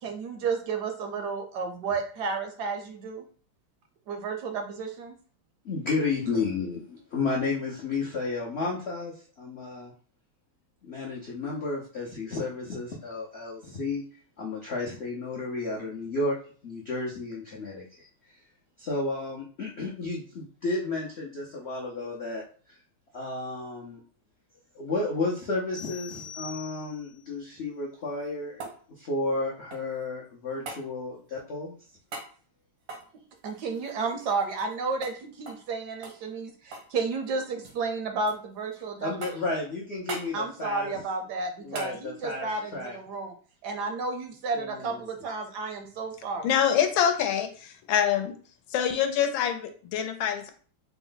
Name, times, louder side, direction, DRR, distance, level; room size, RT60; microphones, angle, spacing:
voice 1, 0.0-3.2 4.1-5.2 33.4-39.1 40.3-43.3 43.6-46.5, right 4 dB, 70° right, 5 dB, 1.0 m, -32 dB
voice 2, 5.6-9.9 10.8-14.0 14.4-16.4 16.6-18.1 18.8-22.4 23.1-24.0 24.7-28.6 28.9-31.7 39.0-40.9 41.6-43.0 44.5-45.0, left 3 dB, 70° left, -4 dB, 0.6 m, -32 dB
sound 1, 25.7-27.3, left 7 dB, 50° left, 0.9 m, -43 dB
sound 2, 28.0-30.1 30.7-30.9 32.1-32.3 32.8-34.8 35.0-35.2 35.5-35.7 36.0-36.9 37.2-37.8 38.3-38.8 39.2-39.6 40.1-40.3 41.7-42.0 44.3-44.4, right 3 dB, 90° right, 1.8 m, -41 dB
voice 3, 46.4-48.3 48.7-50.5, left 9 dB, 85° left, 7 dB, 1.4 m, -25 dB
4.2 x 2.1 x 3.8 m, 0.42 s
omnidirectional pair, 2.1 m